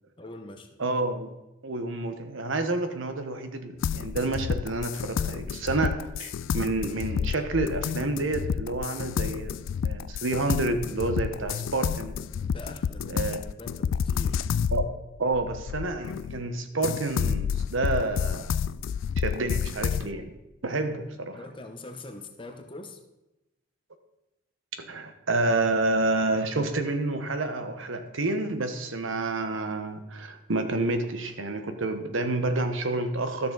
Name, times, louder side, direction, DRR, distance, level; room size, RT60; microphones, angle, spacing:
voice 1, 0.2-0.7 12.4-13.2 13.6-14.4 21.3-23.0, left 2 dB, 25° left, 6 dB, 0.9 m, -43 dB
voice 2, 0.8-1.3 1.6-12.2 13.1-13.4 14.7-14.8 15.2-18.5 19.2-20.3 20.6-21.4 24.8-33.5, right 2 dB, 80° right, 8 dB, 1.1 m, -29 dB
sound 1, 3.8-16.4 16.8-20.1, left 7 dB, 75° left, 0.3 m, -30 dB
13.0 x 6.8 x 4.0 m, 0.97 s
head